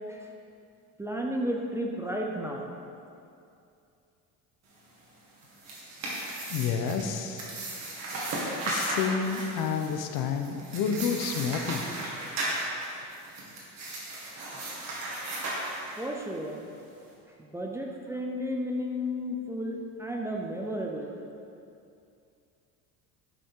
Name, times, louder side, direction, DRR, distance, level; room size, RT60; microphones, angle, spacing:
voice 1, 1.0-2.7 16.0-16.7 17.4-21.2, equal, 10° right, 0 dB, 0.5 m, -33 dB
sound 1, 5.4-16.3, right 1 dB, 45° right, 2.1 m, -35 dB
voice 2, 6.5-7.5 8.6-11.8, left 6 dB, 65° left, 5 dB, 0.9 m, -29 dB
10.5 x 6.8 x 3.8 m, 2.6 s
cardioid pair, 155°, 35 cm